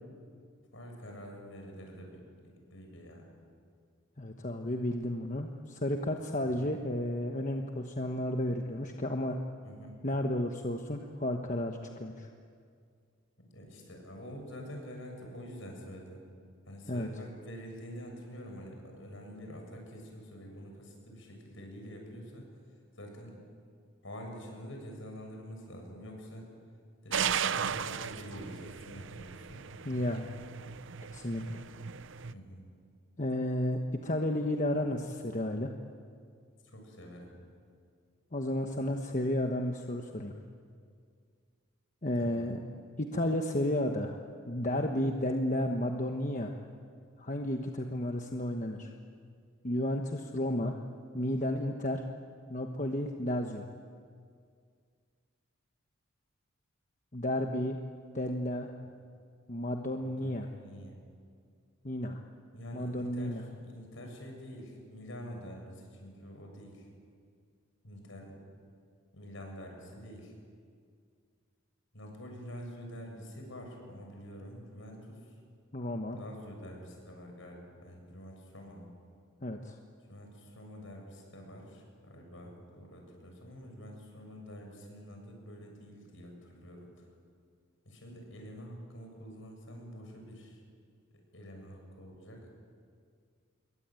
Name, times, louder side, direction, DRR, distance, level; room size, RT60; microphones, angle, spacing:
voice 1, 0.7-3.3 6.4-6.7 9.6-9.9 13.4-16.3 16.7-22.5 23.0-23.3 24.0-26.5 27.0-29.7 32.3-32.7 36.6-37.3 42.2-42.6 60.0-61.0 62.5-66.9 67.8-68.4 69.1-70.3 71.9-75.3 76.2-78.9 80.1-86.9 87.9-90.6 91.3-92.5, equal, 65° left, 2 dB, 7.5 m, -47 dB
voice 2, 4.2-9.4 10.0-12.3 16.9-17.1 29.8-30.3 31.1-31.6 33.2-35.7 38.3-40.3 42.0-42.6 43.0-46.6 47.2-48.9 49.6-50.8 51.1-52.0 52.5-53.6 57.1-57.8 58.1-58.7 59.5-60.5 61.8-62.2 62.7-63.4 75.7-76.2 79.4-79.8, left 1 dB, 35° left, 3 dB, 1.2 m, -32 dB
sound 1, 27.1-32.3, right 7 dB, 60° right, 0.6 m, -36 dB
27.0 x 22.5 x 9.2 m, 2.2 s
head